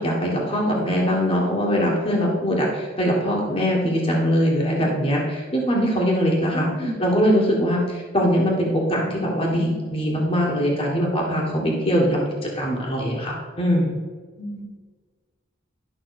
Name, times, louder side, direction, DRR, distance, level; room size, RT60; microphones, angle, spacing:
voice 1, 0.0-14.0, equal, 30° left, -2 dB, 1.5 m, -22 dB
voice 2, 6.5-7.0 14.4-14.6, equal, 80° left, -3 dB, 2.7 m, -32 dB
11.5 x 5.6 x 4.1 m, 1.4 s
head